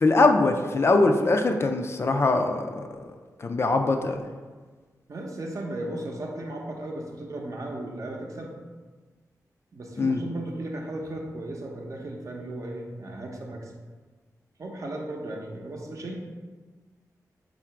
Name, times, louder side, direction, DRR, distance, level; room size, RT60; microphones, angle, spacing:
voice 1, 0.0-2.7 3.4-4.2 10.0-10.2, left 3 dB, 40° left, 5 dB, 0.3 m, -22 dB
voice 2, 5.1-8.6 9.7-13.7 14.6-16.2, right 1 dB, 55° right, 0 dB, 0.7 m, -35 dB
3.8 x 2.4 x 4.4 m, 1.4 s
wide cardioid pair, 100°, 7 cm